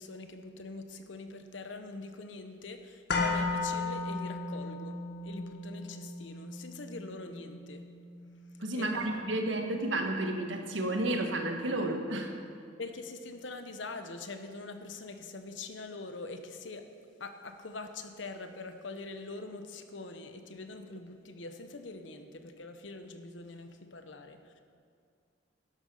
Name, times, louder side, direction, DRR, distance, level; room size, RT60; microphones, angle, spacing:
voice 1, 0.0-7.8 8.7-9.1 9.6-9.7 12.8-16.9 17.2-24.6, left 3 dB, 80° left, 7 dB, 1.0 m, -43 dB
sound 1, 3.1-11.2 11.5-11.6, left 3 dB, 60° left, 1.7 m, -37 dB
voice 2, 8.6-12.3, right 1 dB, 85° right, 4 dB, 1.5 m, -31 dB
12.0 x 11.5 x 5.6 m, 2.2 s
head